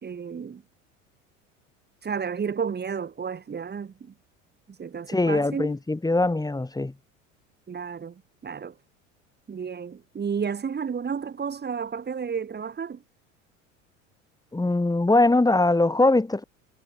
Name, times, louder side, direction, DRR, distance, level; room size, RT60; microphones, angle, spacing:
voice 1, 0.0-0.6 2.0-4.1 4.8-5.7 7.7-8.7 9.5-13.0, right 6 dB, 25° right, 4.7 m, -32 dB
voice 2, 5.1-6.9 14.5-16.4, left 2 dB, 10° left, 5.8 m, -22 dB
figure-of-eight pair, 70°, 39 cm